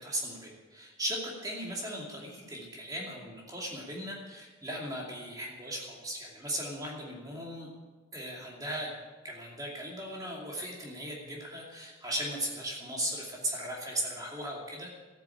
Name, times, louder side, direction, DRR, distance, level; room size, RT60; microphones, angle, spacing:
voice 1, 0.0-7.7 8.1-8.9 9.2-14.9, right 1 dB, 20° right, -2 dB, 2.6 m, -37 dB
14.5 x 9.3 x 8.6 m, 1.3 s
head